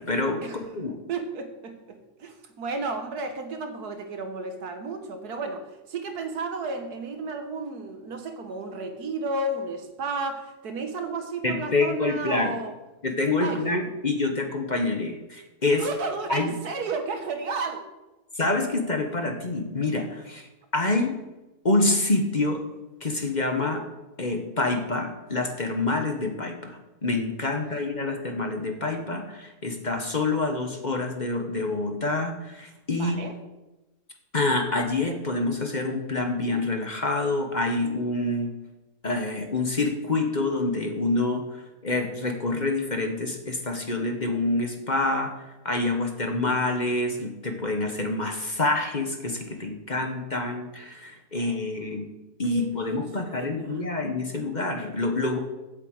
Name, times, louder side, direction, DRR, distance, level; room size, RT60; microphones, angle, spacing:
voice 1, 0.0-0.9 11.4-12.5 13.0-15.9 16.3-16.5 18.4-21.1 21.6-22.6 23.0-23.8 24.2-33.3 34.3-38.5 39.0-45.3 45.6-52.1 52.4-55.4, left 2 dB, 35° left, 4 dB, 1.1 m, -27 dB
voice 2, 1.1-12.7 13.4-13.6 15.8-17.8 27.5-27.6 32.9-33.4 51.4-51.6 52.5-53.8, right 3 dB, 85° right, 6 dB, 1.8 m, -33 dB
8.1 x 7.5 x 8.0 m, 1.0 s
omnidirectional pair, 1.6 m